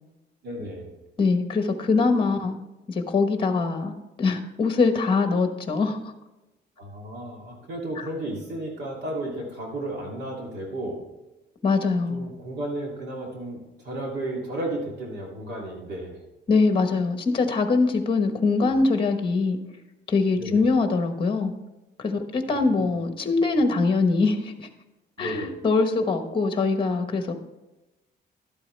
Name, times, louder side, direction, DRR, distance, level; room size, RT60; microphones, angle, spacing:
voice 1, 0.4-0.9 6.8-11.0 12.1-13.6 13.8-16.2 20.4-20.6 25.2-25.5, right 1 dB, 65° right, -1 dB, 2.7 m, -33 dB
voice 2, 1.2-2.6 2.9-6.0 8.0-8.1 11.6-12.3 16.5-19.6 20.1-21.5 22.0-24.7 25.2-27.3, left 4 dB, 25° left, 7 dB, 1.1 m, -23 dB
12.0 x 8.4 x 3.3 m, 1.0 s
cardioid pair, 135°, 19 cm